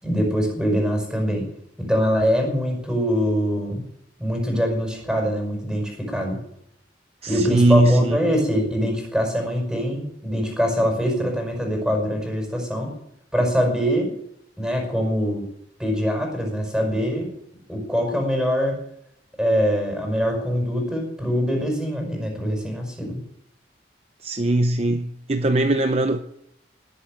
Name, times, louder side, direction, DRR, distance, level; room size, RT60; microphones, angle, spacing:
voice 1, 0.0-1.5 1.8-3.8 4.2-6.4 7.3-12.9 13.3-14.1 14.6-15.5 15.8-17.3 17.7-18.8 19.4-23.2, equal, 5° right, 5.6 m, -23 dB
voice 2, 7.2-8.2 24.2-26.2, right 1 dB, 35° right, 0.7 m, -20 dB
19.5 x 8.3 x 9.0 m
head